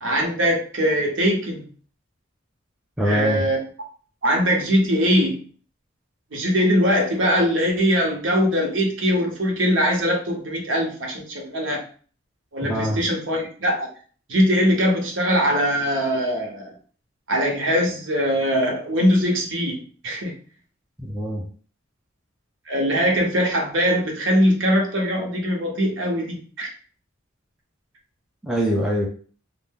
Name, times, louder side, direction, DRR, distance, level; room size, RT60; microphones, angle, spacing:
voice 1, 0.0-1.6 3.0-3.6 4.2-5.4 6.3-11.8 12.5-13.9 14.3-16.7 17.3-20.3 22.7-26.7, equal, 70° right, 1 dB, 0.8 m, -21 dB
voice 2, 3.0-3.4 12.7-13.0 21.0-21.4 28.4-29.1, equal, 5° right, -1 dB, 0.4 m, -23 dB
2.5 x 2.1 x 3.4 m, 0.42 s
head